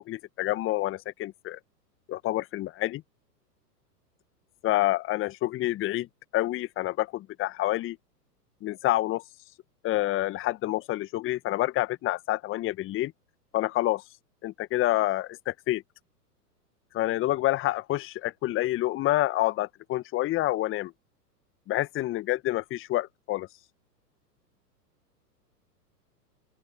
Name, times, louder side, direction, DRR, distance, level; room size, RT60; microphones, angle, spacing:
voice 1, 0.1-1.6 2.1-3.0 4.6-6.1 6.3-8.0 8.6-9.2 9.8-13.1 13.5-14.0 14.4-15.8 16.9-20.9 21.7-23.5, left 16 dB, 25° left, 1.4 m, -28 dB
open air
figure-of-eight pair, 105°, 49 cm